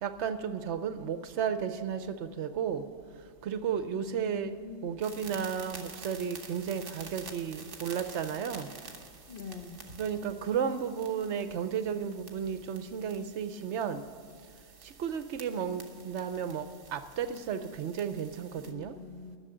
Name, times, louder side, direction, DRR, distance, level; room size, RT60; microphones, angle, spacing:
voice 1, 0.0-2.8 3.4-4.5 4.8-8.7 10.0-14.0 15.0-16.7 16.9-18.9, right 7 dB, 65° right, 11 dB, 0.9 m, -33 dB
voice 2, 3.9-4.9 9.3-9.8 18.6-19.4, left 6 dB, 45° left, 5 dB, 1.2 m, -44 dB
sound 1, 5.0-18.7, right 4 dB, 45° right, 1.3 m, -49 dB
11.0 x 6.7 x 9.1 m, 2.1 s
omnidirectional pair, 1.3 m